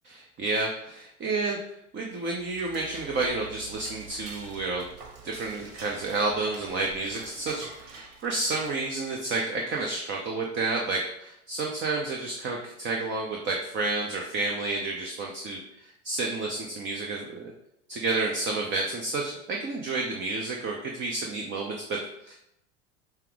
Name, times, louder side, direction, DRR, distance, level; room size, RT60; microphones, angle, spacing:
voice 1, 0.0-1.6 1.9-4.9 5.2-17.5 17.9-22.4, right 3 dB, 30° right, 1 dB, 0.6 m, -30 dB
Dishes pots and pans / Cutlery silverware, 2.2-9.1, right 5 dB, 55° right, 1.4 m, -47 dB
5.6 x 2.0 x 4.7 m, 0.80 s
hypercardioid pair, 100°, 41 cm